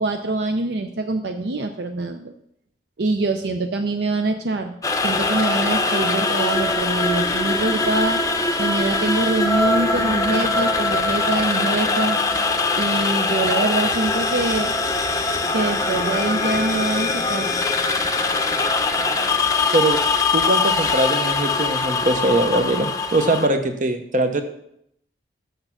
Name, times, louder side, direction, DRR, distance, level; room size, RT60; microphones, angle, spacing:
voice 1, 0.0-2.3 3.0-4.7 5.0-8.2 8.6-12.2 12.7-14.7 15.5-17.5, right 2 dB, 65° right, 6 dB, 0.5 m, -24 dB
sound 1, 4.8-23.5, left 3 dB, 20° left, 0.6 m, -22 dB
voice 2, 20.3-24.4, right 2 dB, 45° right, 8 dB, 0.8 m, -21 dB
6.7 x 6.5 x 6.0 m, 0.73 s
head